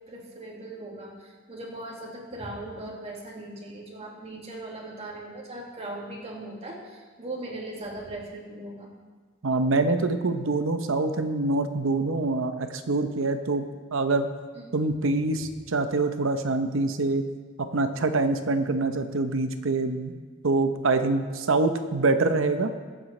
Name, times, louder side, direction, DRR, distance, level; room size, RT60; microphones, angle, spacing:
voice 1, 0.1-8.9 14.5-14.8, right 1 dB, 30° right, -2 dB, 2.1 m, -39 dB
voice 2, 9.4-14.3 14.7-17.2 17.7-20.1 20.4-22.7, right 3 dB, 70° right, 8 dB, 0.8 m, -25 dB
21.0 x 7.7 x 3.3 m, 1.5 s
head